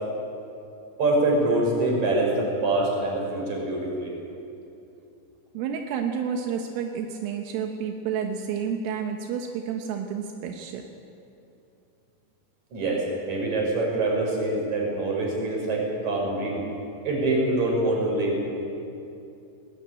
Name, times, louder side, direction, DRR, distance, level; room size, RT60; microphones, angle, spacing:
voice 1, 1.0-4.1 12.7-16.6 17.0-18.4, right 2 dB, 35° right, -1 dB, 6.6 m, -25 dB
voice 2, 5.6-10.9, right 7 dB, 80° right, 3 dB, 3.8 m, -30 dB
22.0 x 20.0 x 8.9 m, 2.7 s
omnidirectional pair, 5.8 m